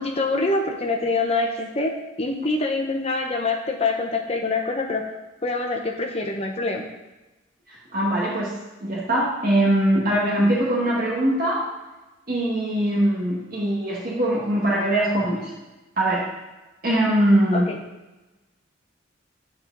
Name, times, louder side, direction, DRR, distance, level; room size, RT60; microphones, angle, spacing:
voice 1, 0.0-5.1 5.4-6.9 17.5-17.8, left 3 dB, 30° left, 2 dB, 0.8 m, -25 dB
voice 2, 7.9-8.5 8.8-11.7 12.3-15.5 16.0-16.3 16.8-17.7, right 1 dB, 45° right, -5 dB, 1.5 m, -21 dB
8.8 x 4.3 x 3.9 m, 1.1 s
head